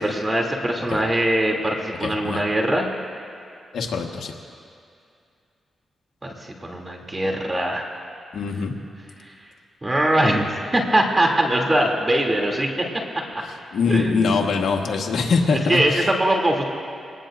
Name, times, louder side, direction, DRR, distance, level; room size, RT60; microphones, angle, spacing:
voice 1, 0.0-2.9 6.2-7.9 9.8-12.7 13.9-14.5 15.7-16.6, right 1 dB, 25° right, 0 dB, 2.9 m, -22 dB
voice 2, 2.0-2.4 3.7-4.3 8.3-8.7 13.7-16.1, left 4 dB, 75° left, 1 dB, 1.4 m, -23 dB
25.5 x 19.0 x 2.6 m, 2.4 s
cardioid pair, 60°, 0 cm